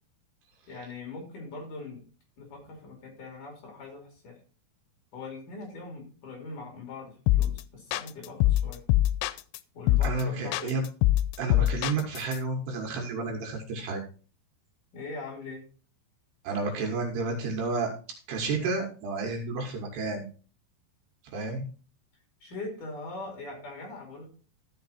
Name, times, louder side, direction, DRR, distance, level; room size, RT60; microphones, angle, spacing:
voice 1, 0.7-2.0 2.4-4.4 5.1-8.8 9.7-10.8 14.9-15.6 22.4-24.3, left 3 dB, 50° left, 1 dB, 3.8 m, -41 dB
sound 1, 7.3-7.6 7.9-9.6 9.9-10.2 10.5-12.4, left 15 dB, 85° left, 2.9 m, -23 dB
voice 2, 10.0-10.8 11.4-14.0 16.4-17.9 18.3-20.2 21.3-21.7, right 3 dB, 70° right, 2 dB, 3.4 m, -31 dB
13.0 x 5.7 x 4.3 m, 0.38 s
omnidirectional pair, 5.3 m